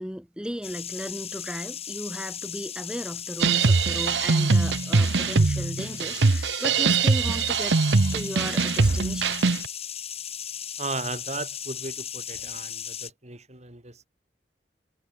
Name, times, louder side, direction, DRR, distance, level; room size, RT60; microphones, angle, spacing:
voice 1, 0.0-7.8 8.1-9.4, equal, 5° right, 4.4 m, -35 dB
sound 1, 0.6-13.1, left 9 dB, 35° left, 6.8 m, -37 dB
sound 2, 3.4-9.7, right 4 dB, 90° right, 0.8 m, -22 dB
voice 2, 10.8-14.1, right 3 dB, 40° right, 6.4 m, -36 dB
head